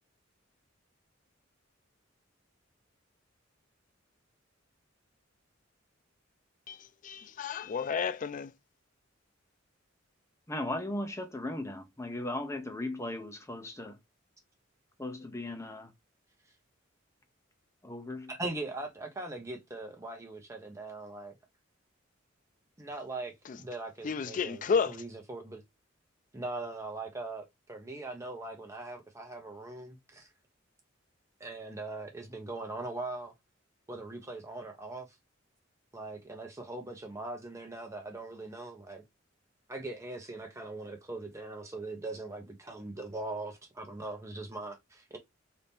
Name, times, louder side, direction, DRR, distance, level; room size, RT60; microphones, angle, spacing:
voice 1, 7.0-8.5 23.5-23.6 24.0-25.0, left 5 dB, 40° left, 0.3 m, -31 dB
voice 2, 10.5-14.0 15.0-15.9 17.8-18.3, left 1 dB, 15° left, 0.8 m, -37 dB
voice 3, 18.3-21.3 22.8-25.6 26.3-30.3 31.4-33.3 33.9-35.1 35.9-39.0 39.7-45.2, right 2 dB, 15° right, 0.9 m, -41 dB
4.1 x 2.9 x 3.5 m
head